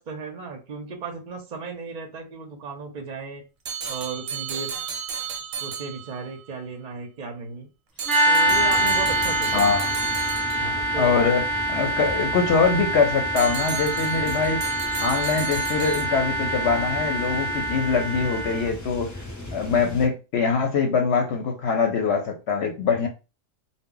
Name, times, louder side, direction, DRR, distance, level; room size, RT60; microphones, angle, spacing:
voice 1, 0.0-3.4 3.9-4.7 5.6-7.7 8.3-9.6 10.6-11.1 12.0-12.1, right 4 dB, 50° right, 0.5 m, -35 dB
sound 1, 3.7-6.4 8.0-10.9 13.4-16.1, right 6 dB, 90° right, 1.0 m, -33 dB
sound 2, 8.1-18.7, right 2 dB, ahead, 0.9 m, -25 dB
sound 3, 8.4-20.1, left 1 dB, 25° left, 0.4 m, -37 dB
voice 2, 9.5-9.9 10.9-14.7 15.0-19.1 19.5-23.1, left 5 dB, 65° left, 0.8 m, -23 dB
2.1 x 2.1 x 3.6 m
omnidirectional pair, 1.3 m